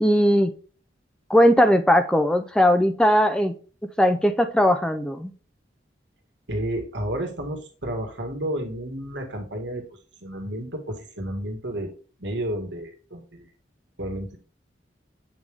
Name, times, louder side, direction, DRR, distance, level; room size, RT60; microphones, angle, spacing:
voice 1, 0.0-0.5 1.3-3.5 4.0-5.3, equal, 5° left, 8 dB, 0.4 m, -19 dB
voice 2, 6.5-9.8 10.2-11.9 12.2-13.5 14.0-14.4, right 1 dB, 85° right, 3 dB, 1.7 m, -31 dB
8.2 x 3.4 x 3.4 m, 0.39 s
head